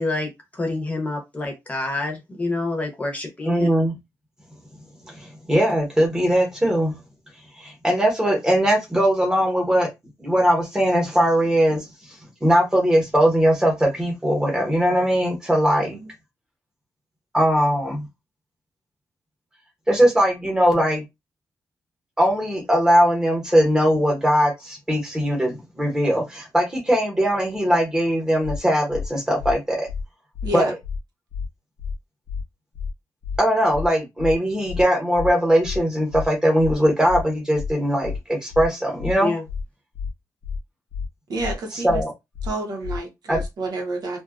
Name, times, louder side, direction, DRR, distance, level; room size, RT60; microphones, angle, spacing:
voice 1, 0.0-3.7 39.2-39.4, left 2 dB, 20° left, 0.7 m, -27 dB
voice 2, 3.4-4.0 5.1-7.0 7.6-9.9 10.2-11.9 12.4-16.0 17.3-18.1 19.9-21.0 22.2-29.9 30.5-30.7 33.4-39.3 41.7-42.1 43.3-43.4, equal, 10° right, 0.9 m, -20 dB
sound 1, 28.4-28.6 28.9-29.1 29.4-29.5 29.9-30.0 30.3-30.5 30.8-31.0 31.3-31.5 31.8-31.9 32.3-32.4 32.7-32.9 33.2-33.4 33.7-33.9 34.2-34.3 34.7-34.8 35.1-35.3 35.6-35.8 36.1-36.3 36.6-36.7 37.1-37.2 37.5-37.7 38.0-38.2 38.5-38.7 39.0-39.1 39.5-39.6 39.9-40.1 40.4-40.6 40.9-41.1 41.4-41.5 41.9-42.0 42.3-42.5 42.8-43.0 43.3-43.5, left 5 dB, 80° left, 0.4 m, -30 dB
voice 3, 30.4-30.7 41.3-42.0 42.4-44.2, right 2 dB, 80° right, 0.9 m, -29 dB
2.6 x 2.3 x 2.4 m
wide cardioid pair, 155°, 7 cm